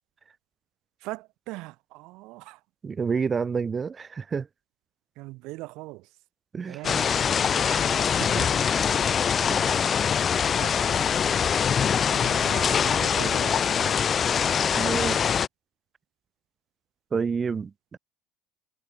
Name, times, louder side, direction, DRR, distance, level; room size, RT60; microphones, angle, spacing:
voice 1, 1.0-2.6 5.2-6.2 6.7-7.1 7.4-7.9 9.5-9.8 10.6-10.9 12.1-14.0, right 22 dB, 65° right, 1.3 m, -41 dB
voice 2, 2.8-4.5 6.5-6.8 8.2-8.5 9.5-9.9 13.2-13.3 14.7-15.4 17.1-18.0, right 5 dB, 30° right, 0.5 m, -29 dB
sound 1, 6.8-15.5, left 7 dB, 40° left, 0.4 m, -23 dB
hypercardioid pair, 65°, 0 cm